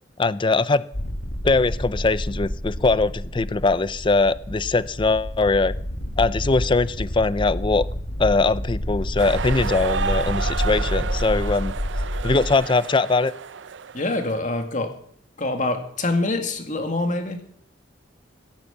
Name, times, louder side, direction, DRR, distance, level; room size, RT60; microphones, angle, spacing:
voice 1, 0.2-0.8 1.4-5.7 6.2-7.9 8.2-11.7 12.2-13.3, left 3 dB, 25° left, 17 dB, 0.5 m, -21 dB
sound 1, 0.9-12.5, equal, 85° left, 1.8 m, -29 dB
sound 2, 9.2-14.4, right 6 dB, 75° right, 0.5 m, -31 dB
voice 2, 13.9-14.9 15.4-17.4, left 2 dB, 45° left, 5 dB, 2.1 m, -25 dB
16.0 x 9.0 x 7.1 m, 0.66 s
head